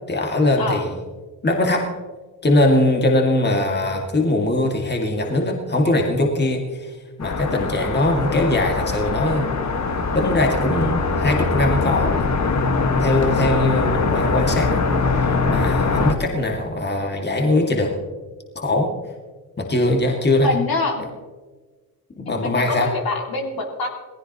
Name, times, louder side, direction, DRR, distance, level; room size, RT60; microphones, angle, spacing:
voice 1, 0.1-1.0 1.4-1.9 2.4-9.6 10.1-12.3 13.0-14.9 15.1-18.0 18.6-18.9 19.6-20.5 22.2-22.9, left 1 dB, 25° left, 2 dB, 2.3 m, -21 dB
sound 1, 7.2-16.1, left 4 dB, 40° left, 1.8 m, -22 dB
voice 2, 20.4-21.0 22.3-23.9, left 3 dB, 55° left, 1 dB, 2.9 m, -25 dB
19.0 x 16.0 x 3.1 m, 1.3 s
hypercardioid pair, 55°, 43 cm